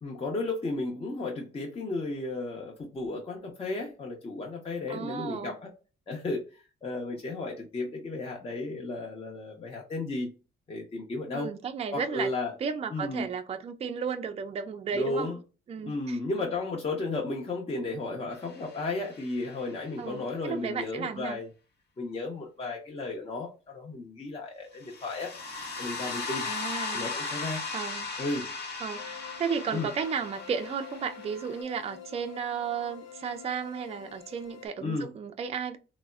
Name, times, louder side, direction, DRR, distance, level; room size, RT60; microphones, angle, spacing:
voice 1, 0.0-5.7 6.1-10.3 10.7-11.5 11.9-12.5 12.9-13.3 14.9-15.4 15.8-21.5 22.0-25.4 25.8-26.5 26.9-27.6 28.2-28.5 29.7-29.9 34.8-35.1, left 2 dB, 30° left, 0.7 m, -34 dB
voice 2, 4.9-5.6 11.3-12.3 12.6-15.3 15.7-16.2 20.0-21.4 26.4-27.1 27.7-28.1 28.8-35.8, right 6 dB, 30° right, 0.4 m, -34 dB
sound 1, 18.5-19.6 24.8-31.6, left 4 dB, 55° left, 1.0 m, -37 dB
sound 2, 29.0-34.7, left 8 dB, 75° left, 0.5 m, -47 dB
3.4 x 2.0 x 2.2 m
cardioid pair, 90°, 20 cm